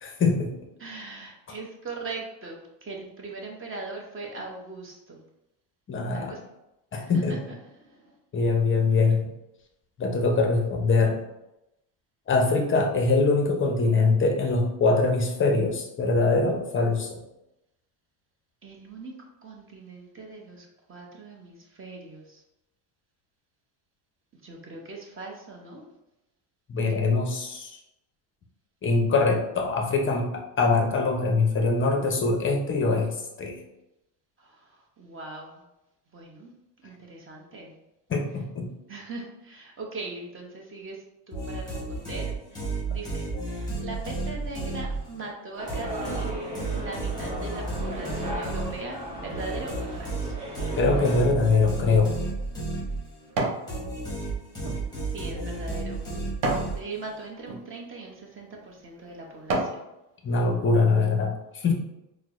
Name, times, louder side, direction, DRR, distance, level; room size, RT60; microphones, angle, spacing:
voice 1, 0.0-0.5 5.9-6.3 6.9-7.4 8.3-9.3 10.0-11.2 12.3-17.2 26.7-27.8 28.8-33.6 38.1-38.7 50.8-52.2 60.2-61.7, left 3 dB, 25° left, 2 dB, 0.6 m, -23 dB
voice 2, 0.8-5.2 6.1-6.4 6.9-8.2 18.6-19.1 19.4-22.4 24.4-25.8 34.4-35.6 36.1-36.5 36.8-37.8 38.9-46.3 46.7-50.4 55.1-56.3 56.6-59.8, right 3 dB, 25° right, 0 dB, 0.8 m, -40 dB
sound 1, 41.3-45.3 45.7-53.3 53.7-57.2, right 3 dB, 10° left, 0.9 m, -32 dB
sound 2, 45.6-51.2, equal, 45° right, 1.1 m, -36 dB
sound 3, 51.9-53.7 54.1-56.8 57.4-57.6 58.3-58.5 59.0-59.8 60.3-60.4, right 2 dB, 60° right, 0.8 m, -32 dB
4.3 x 2.1 x 2.4 m, 0.90 s
supercardioid pair, 100°, 49 cm